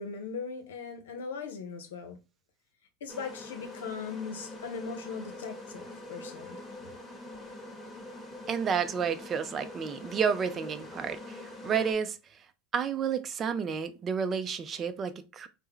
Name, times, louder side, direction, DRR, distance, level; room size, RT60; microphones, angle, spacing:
voice 1, 0.0-2.2 3.0-6.6, left 5 dB, 90° left, 0.7 m, -39 dB
sound 1, 3.1-11.9, left 1 dB, 20° left, 1.1 m, -44 dB
voice 2, 8.5-12.2 12.7-15.5, right 7 dB, 35° right, 0.5 m, -31 dB
3.3 x 2.1 x 3.5 m
supercardioid pair, 105°, 0 cm